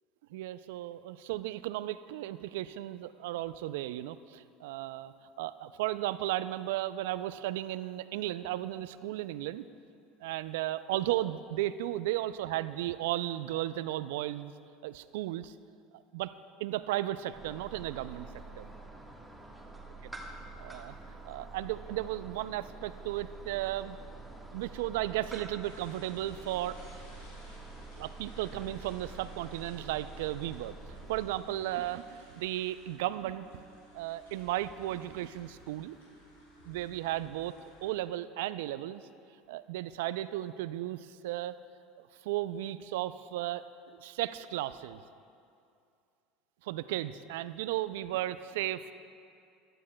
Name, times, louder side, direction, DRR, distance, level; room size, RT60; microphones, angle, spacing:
voice 1, 0.3-9.7 10.2-14.5 14.8-15.5 16.1-16.3 16.6-18.3 18.6-18.7 20.6-21.0 21.2-24.0 24.5-26.8 28.0-30.7 31.1-33.6 33.9-36.0 36.6-37.5 37.8-39.0 39.5-41.5 42.2-43.6 44.0-45.0 46.6-48.9, right 14 dB, 75° right, 14 dB, 0.3 m, -35 dB
sound 1, 17.3-31.3, right 3 dB, ahead, 1.4 m, -47 dB
sound 2, 25.6-37.9, left 1 dB, 85° left, 2.9 m, -55 dB
15.5 x 12.0 x 2.2 m, 2.4 s
hypercardioid pair, 80°, 0 cm